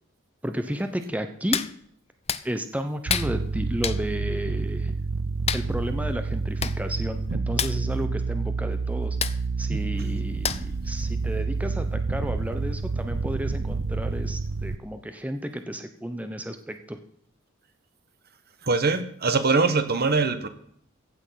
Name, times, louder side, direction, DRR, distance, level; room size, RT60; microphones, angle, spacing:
voice 1, 0.4-1.7 2.4-4.9 5.5-9.2 9.6-17.0, equal, 5° right, 8 dB, 0.9 m, -32 dB
Hands, 1.5-1.7 2.3-2.4 3.1-3.3 3.8-4.0 5.5-5.7 6.3-6.4 6.6-6.8 7.0-7.2 7.5-7.8 9.2-9.4 10.4-10.8 11.2-11.3, left 8 dB, 30° left, 0.6 m, -27 dB
sound 1, 3.1-14.8, right 3 dB, 85° right, 0.8 m, -29 dB
voice 2, 18.6-20.5, right 3 dB, 50° right, 10 dB, 1.4 m, -22 dB
15.5 x 8.8 x 5.8 m, 0.65 s
head